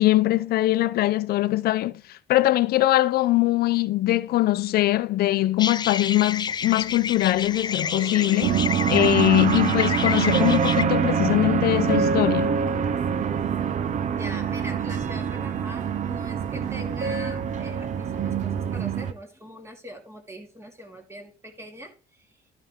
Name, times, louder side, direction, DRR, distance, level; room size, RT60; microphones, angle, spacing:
voice 1, 0.0-12.5, left 16 dB, 65° left, 0.6 m, -22 dB
sound 1, 5.6-10.8, left 7 dB, 25° left, 0.4 m, -30 dB
sound 2, 6.4-12.7, right 3 dB, 80° right, 2.9 m, -44 dB
sound 3, 8.4-19.1, right 7 dB, 45° right, 0.8 m, -25 dB
voice 2, 14.2-22.4, equal, 15° right, 2.3 m, -42 dB
12.5 x 5.5 x 3.7 m
cardioid pair, 110°, 17 cm